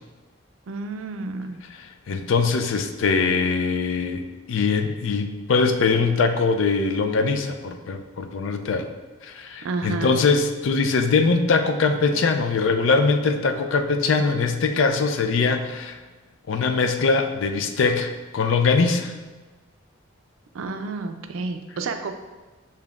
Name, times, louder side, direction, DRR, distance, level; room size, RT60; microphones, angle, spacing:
voice 1, 0.7-1.6 9.6-10.2 20.5-22.1, right 3 dB, 80° right, 7 dB, 0.4 m, -30 dB
voice 2, 2.1-4.2 4.5-8.9 9.2-16.0 16.5-19.1, left 4 dB, 70° left, 6 dB, 0.4 m, -22 dB
6.8 x 2.7 x 2.4 m, 1.2 s
head